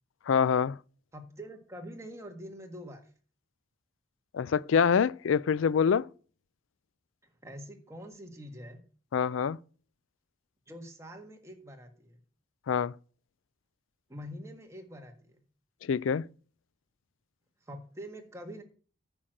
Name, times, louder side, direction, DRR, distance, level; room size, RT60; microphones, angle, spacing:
voice 1, 0.3-0.8 4.3-6.1 9.1-9.6 12.7-12.9 15.8-16.3, left 6 dB, 85° left, 0.4 m, -25 dB
voice 2, 1.1-3.0 7.4-8.8 10.7-12.2 14.1-15.3 17.7-18.6, equal, 15° right, 1.6 m, -45 dB
9.8 x 6.1 x 6.5 m
head